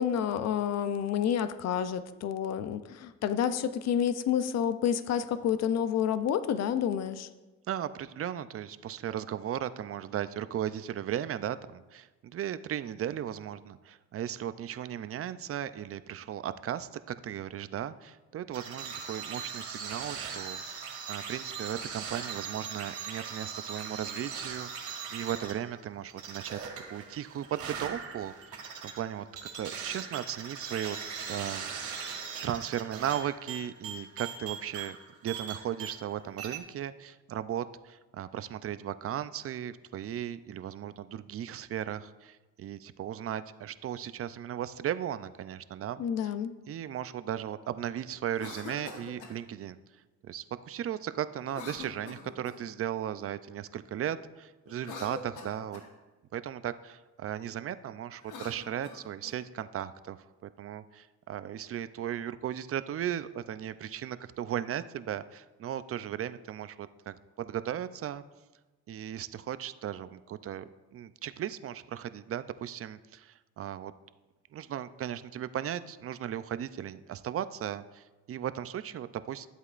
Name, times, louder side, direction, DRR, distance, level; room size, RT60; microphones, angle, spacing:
voice 1, 0.0-7.3 46.0-46.5, left 9 dB, 60° left, 12 dB, 0.6 m, -29 dB
voice 2, 7.7-26.6 26.9-29.3 29.6-31.0 31.3-31.7 32.0-32.1 32.4-35.0 35.2-46.0 46.7-49.8 50.2-55.8 56.3-60.2 60.4-68.2 68.9-73.9 74.5-79.5, right 10 dB, 50° right, 13 dB, 0.5 m, -36 dB
sound 1, 18.5-36.1 36.4-36.6, right 6 dB, 75° right, 2.1 m, -40 dB
Cough, 48.3-49.4 51.5-52.7 54.7-55.9 58.1-59.4, left 4 dB, 80° left, 1.3 m, -44 dB
13.0 x 8.1 x 2.5 m, 1.2 s
cardioid pair, 90°, 30 cm